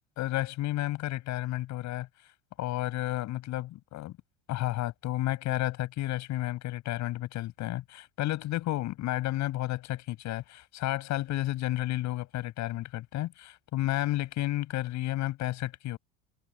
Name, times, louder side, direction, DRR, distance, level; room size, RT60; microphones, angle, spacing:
voice 1, 0.2-2.1 2.6-4.1 4.5-16.0, left 15 dB, 55° left, 7.5 m, -32 dB
supercardioid pair, 95°, 34 cm